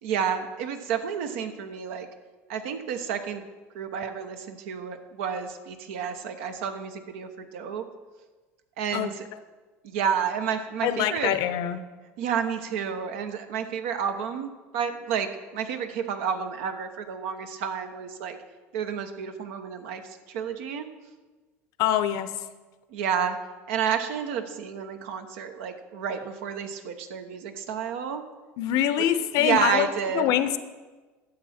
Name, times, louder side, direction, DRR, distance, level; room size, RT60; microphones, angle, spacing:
voice 1, 0.0-2.1 2.5-3.4 3.7-7.8 8.8-9.2 9.8-11.4 12.2-18.4 18.7-20.9 22.9-23.4 23.7-28.2 29.0-29.1 29.4-30.3, right 7 dB, 75° right, 7 dB, 1.0 m, -30 dB
voice 2, 10.8-11.8 21.8-22.3 28.6-29.9 30.1-30.6, left 11 dB, 65° left, 12 dB, 0.7 m, -24 dB
12.0 x 7.4 x 4.3 m, 1.3 s
hypercardioid pair, 85°, 7 cm